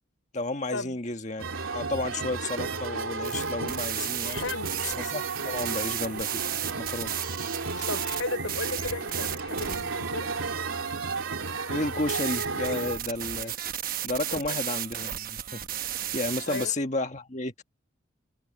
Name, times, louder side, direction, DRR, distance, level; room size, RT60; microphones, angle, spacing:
voice 1, 0.3-4.5 4.9-7.1 7.8-7.9 11.7-13.5 14.0-15.7 16.1-17.6, left 2 dB, 35° left, 1.6 m, -32 dB
sound 1, 1.4-13.0, right 4 dB, 90° right, 3.5 m, -33 dB
sound 2, 3.2-16.7, right 11 dB, 45° right, 1.0 m, -35 dB
voice 2, 4.2-4.7 7.9-10.3 14.3-14.6 16.5-16.7, left 3 dB, 85° left, 4.4 m, -35 dB
head